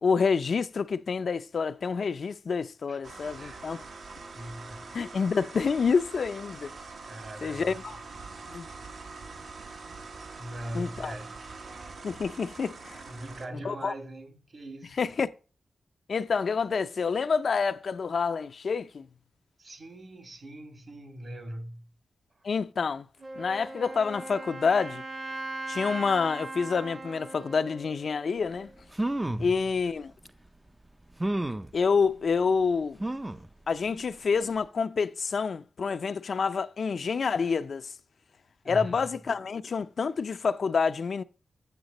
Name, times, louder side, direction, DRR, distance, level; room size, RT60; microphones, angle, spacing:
voice 1, 0.0-3.8 4.9-6.7 7.4-7.9 8.5-8.7 10.7-11.1 12.0-13.0 13.6-13.9 15.0-15.3 16.1-19.1 22.4-23.1 23.4-25.0 25.7-28.7 29.4-30.1 31.7-33.0 33.7-37.8 38.7-41.2, left 5 dB, 60° left, 0.4 m, -28 dB
sound 1, 3.0-13.5, right 4 dB, 65° right, 1.1 m, -44 dB
voice 2, 3.3-3.8 4.3-4.9 7.0-7.8 10.4-11.5 13.1-15.0 19.6-21.9 29.2-29.7 38.6-39.2, right 1 dB, 50° right, 1.9 m, -41 dB
Wind instrument woodwind instrument, 23.2-28.9, right 2 dB, 35° right, 0.9 m, -40 dB
sound 2, 28.5-28.6 28.9-29.5 30.3-30.4 31.2-31.7 33.0-33.5 34.0-34.1 34.4-34.5, right 1 dB, 15° right, 0.4 m, -30 dB
8.0 x 6.6 x 4.0 m
wide cardioid pair, 90°, 0 cm